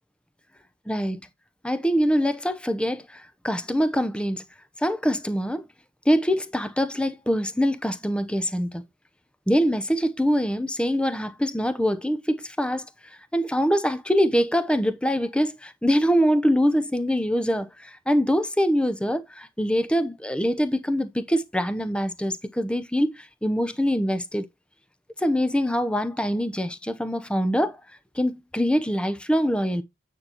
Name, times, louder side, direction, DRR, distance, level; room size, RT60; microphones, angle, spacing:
voice 1, 0.9-1.2 1.6-4.4 4.8-5.6 6.1-8.8 9.5-12.9 13.3-24.5 25.2-27.8 28.1-29.8, equal, 5° left, 0.7 m, -24 dB
9.4 x 6.2 x 2.9 m
head